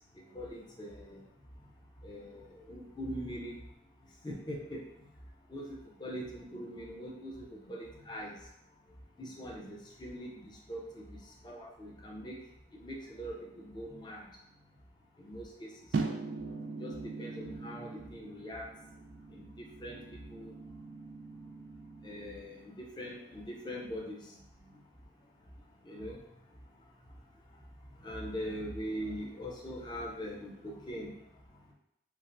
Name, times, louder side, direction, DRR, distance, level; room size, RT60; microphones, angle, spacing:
voice 1, 0.3-1.2 2.0-3.5 4.2-4.8 5.5-5.7 6.0-8.3 9.2-11.0 11.4-12.4 12.8-13.3 13.6-14.2 15.2-15.7 16.8-18.7 19.3-20.0 20.3-20.5 22.0-24.2 25.9-26.2 28.0-31.1, equal, 25° left, -2 dB, 0.5 m, -42 dB
sound 1, 15.9-22.2, right 4 dB, 70° right, 0.3 m, -40 dB
3.2 x 2.5 x 2.5 m, 0.82 s
head